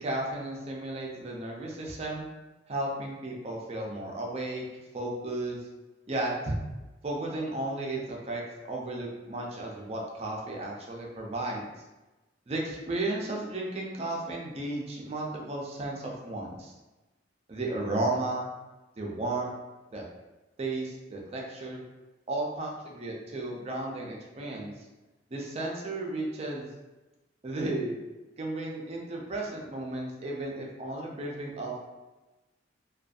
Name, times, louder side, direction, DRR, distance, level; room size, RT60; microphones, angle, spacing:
voice 1, 0.0-2.3 2.7-4.6 4.9-5.6 6.1-6.6 7.0-11.6 12.5-16.7 17.5-18.5 19.0-19.5 19.9-20.0 20.6-21.8 22.3-24.7 25.3-26.7 27.4-28.0 28.4-31.8, right 2 dB, 35° right, -2 dB, 0.4 m, -34 dB
2.5 x 2.2 x 2.4 m, 1.1 s
head